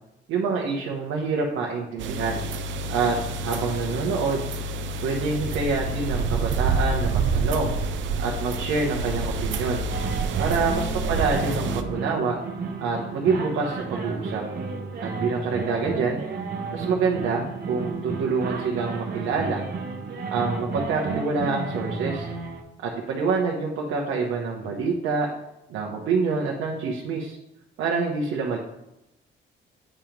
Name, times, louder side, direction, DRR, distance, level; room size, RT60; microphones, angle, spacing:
voice 1, 0.3-2.4 2.9-4.5 5.0-7.7 8.2-9.8 10.4-12.4 12.8-14.4 15.0-16.2 16.7-19.6 20.3-22.3 22.8-25.3 25.7-27.4 27.8-28.6, right 4 dB, 85° right, -1 dB, 1.0 m, -26 dB
sound 1, 2.0-11.8, right 3 dB, 70° right, 0.6 m, -28 dB
sound 2, 9.9-22.6, right 4 dB, 55° right, 1.1 m, -32 dB
8.8 x 3.0 x 5.1 m, 0.90 s
cardioid pair, 90°, 20 cm